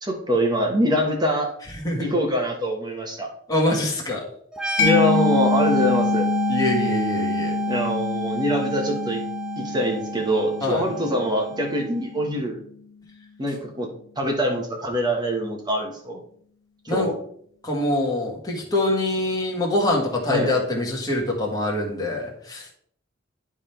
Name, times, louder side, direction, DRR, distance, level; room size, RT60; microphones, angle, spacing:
voice 1, 0.0-1.5 2.0-3.3 4.8-6.3 7.7-9.2 9.6-12.6 13.4-13.9 14.2-16.2 16.8-17.2 20.3-20.5, equal, 20° right, 1 dB, 1.3 m, -24 dB
voice 2, 3.5-4.2 6.5-7.5 10.6-10.9 16.9-17.1 17.6-22.7, left 1 dB, 20° left, -2 dB, 1.7 m, -24 dB
sound 1, 4.5-12.0, right 5 dB, 5° right, 0.9 m, -30 dB
Mallet percussion, 4.8-12.2, left 5 dB, 65° left, 0.7 m, -26 dB
10.5 x 3.6 x 4.5 m, 0.62 s
head